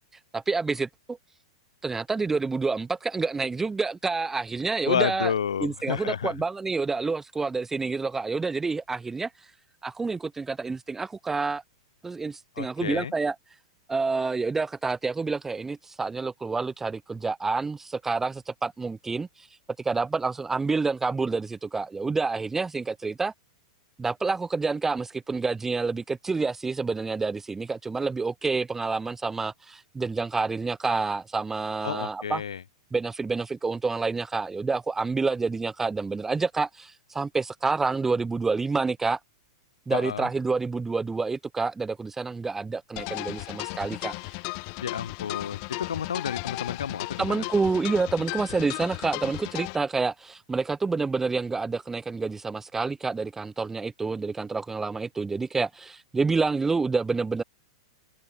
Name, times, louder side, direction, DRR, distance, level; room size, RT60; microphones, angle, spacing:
voice 1, 0.3-1.2 1.8-5.3 5.6-9.3 9.8-11.6 12.0-13.4 13.9-19.5 19.8-23.3 24.0-32.4 32.9-39.2 39.9-44.1 47.2-57.4, right 4 dB, 10° right, 0.4 m, -28 dB
voice 2, 4.9-6.3 12.6-13.1 31.8-32.6 39.9-40.3 44.8-47.5, left 7 dB, 70° left, 3.5 m, -30 dB
sound 1, 43.0-49.8, left 40 dB or more, 45° left, 4.4 m, -35 dB
figure-of-eight pair, 100°, 3 cm